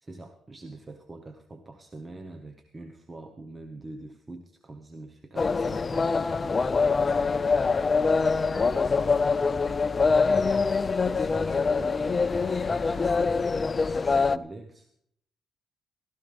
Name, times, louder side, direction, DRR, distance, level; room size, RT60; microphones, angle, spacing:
voice 1, 0.0-7.3 10.9-14.9, right 2 dB, 25° right, 6 dB, 1.1 m, -44 dB
sound 1, 5.4-14.4, left 4 dB, 35° left, 0.4 m, -24 dB
voice 2, 7.9-9.8, right 3 dB, 45° right, 2 dB, 3.3 m, -49 dB
16.0 x 14.0 x 3.5 m, 0.71 s
cardioid pair, 90°, 0 cm